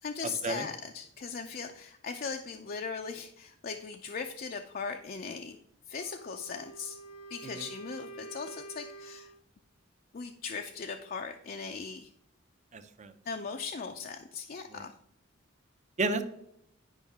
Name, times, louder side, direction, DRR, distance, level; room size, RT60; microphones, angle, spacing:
voice 1, 0.0-5.6 5.9-7.0 7.3-9.3 10.1-12.1 13.3-14.9, left 5 dB, 45° left, 5 dB, 0.4 m, -39 dB
Wind instrument woodwind instrument, 5.9-9.4, right 2 dB, 80° left, 0.8 m, -48 dB
voice 2, 12.7-13.1 14.7-14.8 16.0-16.2, right 3 dB, 35° right, 9 dB, 0.6 m, -32 dB
10.0 x 5.4 x 3.5 m, 0.75 s
head